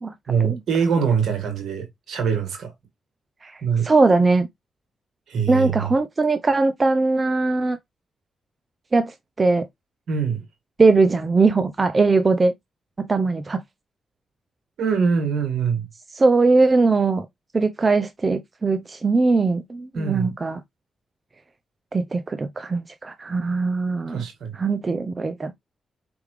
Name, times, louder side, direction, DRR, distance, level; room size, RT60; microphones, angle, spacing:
voice 1, 0.3-2.7 3.6-3.9 5.3-5.9 10.1-10.4 14.8-15.9 19.9-20.3 24.1-24.6, right 6 dB, 75° right, 1.9 m, -23 dB
voice 2, 3.4-4.5 5.5-7.8 8.9-9.6 10.8-12.5 13.0-13.6 16.2-17.3 17.5-20.6 21.9-24.2 24.5-25.5, right 3 dB, 40° right, 0.6 m, -20 dB
4.7 x 3.5 x 3.2 m
supercardioid pair, 45°, 0 cm